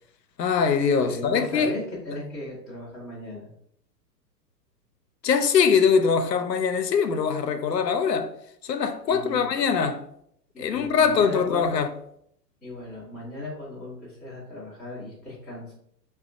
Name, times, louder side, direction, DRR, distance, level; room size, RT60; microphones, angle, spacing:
voice 1, 0.4-1.8 5.2-8.3 8.6-10.0 10.6-11.9, left 6 dB, 75° left, 0.6 m, -22 dB
voice 2, 1.0-3.5 9.1-9.5 10.5-11.8 12.6-15.7, left 1 dB, ahead, 0.5 m, -37 dB
4.7 x 2.3 x 2.5 m
figure-of-eight pair, 110°, 50 cm